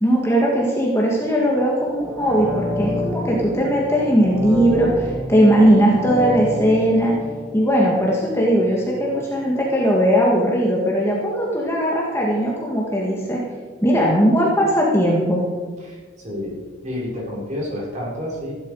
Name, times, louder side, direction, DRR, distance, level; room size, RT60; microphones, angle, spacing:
voice 1, 0.0-7.2 7.5-13.4 13.8-15.4, equal, 15° left, -3 dB, 1.9 m, -18 dB
sound 1, 1.9-8.7 9.1-9.2, left 1 dB, 10° right, 1.9 m, -28 dB
voice 2, 15.8-18.6, left 1 dB, 35° right, -4 dB, 4.8 m, -30 dB
15.0 x 12.0 x 4.8 m, 1.4 s
head